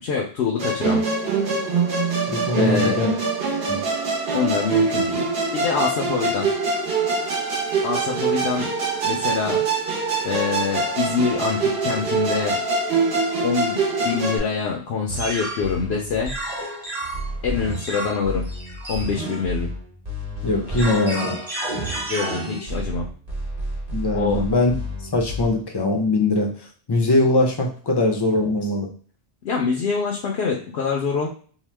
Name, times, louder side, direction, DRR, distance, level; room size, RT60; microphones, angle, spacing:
voice 1, 0.0-1.0 2.6-3.0 4.3-6.5 7.8-8.7 9.0-9.6 10.2-12.6 13.4-16.3 17.4-18.4 18.9-19.7 22.1-23.0 24.1-24.4 29.4-31.3, left 5 dB, 85° left, 0 dB, 0.9 m, -25 dB
Musical instrument, 0.6-14.4, right 4 dB, 65° right, 0.9 m, -24 dB
voice 2, 2.3-3.1 3.7-3.8 20.4-21.4 23.9-24.7 25.1-26.5 26.9-28.9, left 2 dB, 35° left, 1 dB, 0.4 m, -21 dB
sound 1, 15.1-25.6, right 1 dB, 40° right, 1.1 m, -30 dB
2.8 x 2.1 x 3.2 m, 0.43 s
omnidirectional pair, 1.1 m